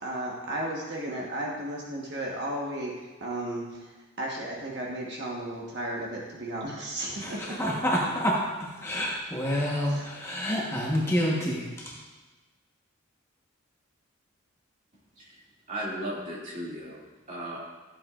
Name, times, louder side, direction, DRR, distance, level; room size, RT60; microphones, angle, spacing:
voice 1, 0.0-2.9 3.2-3.9 4.2-7.6 9.8-10.1, right 1 dB, 55° right, -2 dB, 1.2 m, -34 dB
voice 2, 7.2-12.0, equal, 15° left, -4 dB, 1.1 m, -28 dB
voice 3, 15.7-17.0 17.3-17.6, right 1 dB, 35° right, -5 dB, 2.4 m, -35 dB
14.0 x 7.4 x 2.5 m, 1.2 s
head